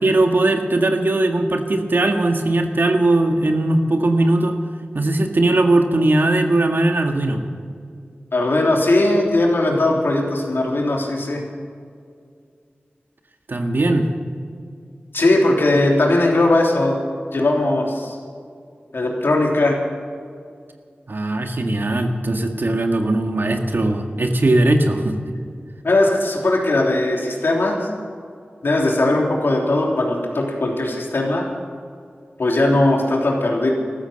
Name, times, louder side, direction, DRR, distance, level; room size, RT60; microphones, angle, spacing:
voice 1, 0.0-4.6 4.9-7.4 13.5-14.1 21.1-25.2, right 2 dB, 65° right, 4 dB, 1.8 m, -19 dB
voice 2, 8.3-11.4 15.1-16.9 17.3-18.1 18.9-19.8 25.8-27.9 28.6-31.4 32.4-33.7, left 2 dB, 75° left, 0 dB, 3.4 m, -19 dB
14.5 x 13.5 x 6.9 m, 2.2 s
wide cardioid pair, 50°, 4 cm